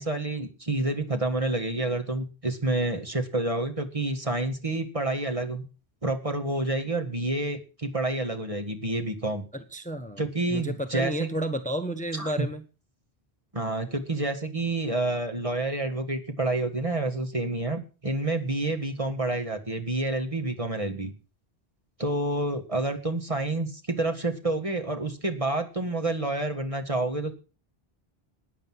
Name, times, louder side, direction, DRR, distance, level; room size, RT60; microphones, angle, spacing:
voice 1, 0.0-5.7 6.0-9.5 10.2-11.3 12.1-12.5 13.5-21.1 22.0-27.3, right 2 dB, 35° right, 5 dB, 1.8 m, -28 dB
voice 2, 9.5-10.2 10.5-12.6, right 1 dB, 5° left, 8 dB, 1.1 m, -31 dB
13.5 x 9.8 x 6.1 m, 0.34 s
omnidirectional pair, 1.1 m